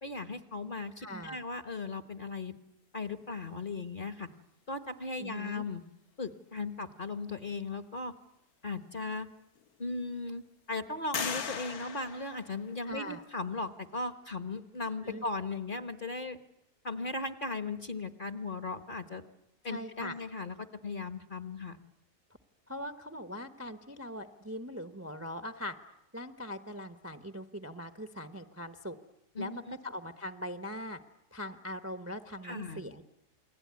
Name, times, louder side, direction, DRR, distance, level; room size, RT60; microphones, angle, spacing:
voice 1, 0.0-2.6 2.9-4.3 4.7-5.8 6.2-8.1 8.6-9.3 9.8-16.4 16.8-19.2 19.6-21.8 29.3-29.8 32.4-32.8, left 3 dB, 35° left, 10 dB, 1.2 m, -37 dB
voice 2, 1.0-1.4 5.2-5.6 12.8-13.2 15.0-15.2 19.7-20.2 22.7-25.7 26.1-29.0 29.4-31.0 31.3-33.0, left 1 dB, 10° right, 9 dB, 0.8 m, -41 dB
sound 1, 8.9-9.0 9.5-10.2 11.1-13.1, left 6 dB, 70° left, 1.7 m, -39 dB
29.0 x 20.5 x 9.6 m, 0.86 s
omnidirectional pair, 1.7 m